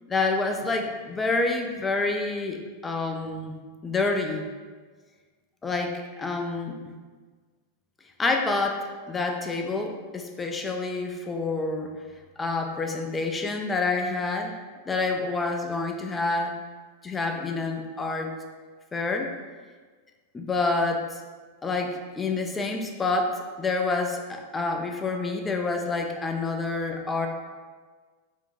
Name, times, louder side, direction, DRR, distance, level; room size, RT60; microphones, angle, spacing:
voice 1, 0.1-3.6 3.8-4.5 5.6-6.8 8.2-11.9 12.4-14.6 14.9-16.6 17.0-18.3 18.9-19.3 20.3-21.1 21.6-27.3, left 3 dB, 15° left, 3 dB, 0.3 m, -28 dB
2.5 x 2.1 x 3.8 m, 1.4 s
figure-of-eight pair, 90°, 0 cm